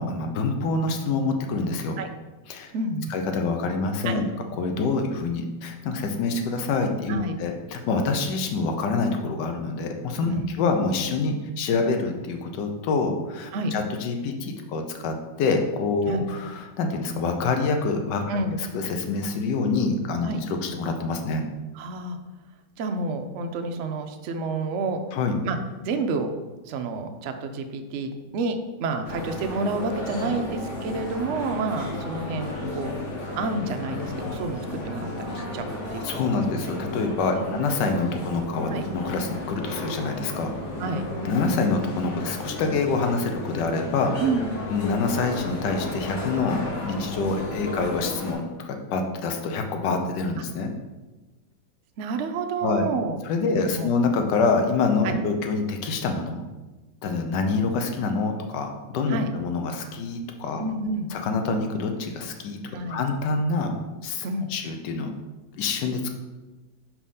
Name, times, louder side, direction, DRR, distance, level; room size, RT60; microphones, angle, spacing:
voice 1, 0.0-2.0 2.5-2.7 3.1-4.3 4.6-10.3 10.6-18.2 18.7-20.3 20.6-21.4 25.1-25.4 35.3-35.6 36.0-40.5 41.2-44.1 44.7-50.7 52.6-52.9 53.2-56.4 57.0-60.6 61.1-62.6 62.9-63.7 64.0-65.1 65.5-66.1, left 4 dB, 80° left, 4 dB, 1.3 m, -26 dB
voice 2, 2.7-3.1 4.0-4.2 7.1-7.3 10.3-10.5 13.5-13.7 16.1-16.3 18.3-18.6 20.2-20.4 21.7-22.2 22.8-25.0 25.4-25.6 25.8-26.3 26.6-32.9 33.4-36.1 37.3-37.6 38.7-38.8 40.8-41.0 44.2-44.5 52.0-53.2 53.6-53.9 55.0-55.2 59.1-59.3 60.6-61.1 62.7-63.0 64.2-64.5, right 3 dB, 80° right, 6 dB, 0.6 m, -29 dB
sound 1, 29.0-48.3, left 1 dB, 50° left, 1.3 m, -33 dB
4.9 x 3.5 x 5.5 m, 1.2 s
omnidirectional pair, 1.9 m